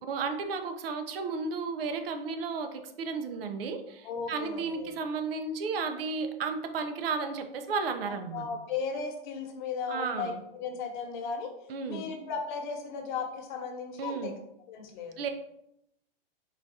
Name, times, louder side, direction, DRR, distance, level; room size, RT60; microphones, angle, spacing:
voice 1, 0.1-8.5 9.9-10.4 11.7-12.1 14.0-14.3 15.2-15.3, right 4 dB, 70° right, 7 dB, 0.7 m, -33 dB
voice 2, 4.0-4.9 8.0-10.3 10.6-11.5 11.9-14.3 14.7-15.3, left 5 dB, 50° left, 3 dB, 1.0 m, -36 dB
4.0 x 2.4 x 4.0 m, 0.79 s
hypercardioid pair, 135°, 30 cm